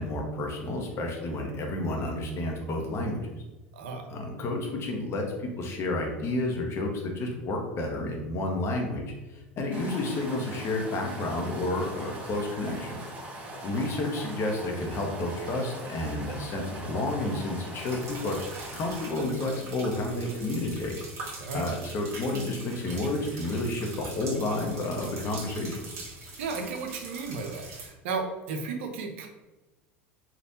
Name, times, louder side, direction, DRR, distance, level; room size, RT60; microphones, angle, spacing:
voice 1, 0.0-3.2 4.1-13.0 13.6-18.4 18.7-21.0 21.5-25.8, left 2 dB, 40° left, 1 dB, 0.8 m, -30 dB
voice 2, 3.7-4.1 21.4-21.6 26.4-29.3, right 4 dB, 70° right, 4 dB, 0.5 m, -34 dB
sound 1, 9.7-19.1, right 1 dB, 20° right, 1.0 m, -41 dB
sound 2, 17.8-27.9, right 3 dB, 45° right, 1.4 m, -43 dB
3.3 x 2.4 x 2.7 m, 1.1 s
hypercardioid pair, 80°, 7 cm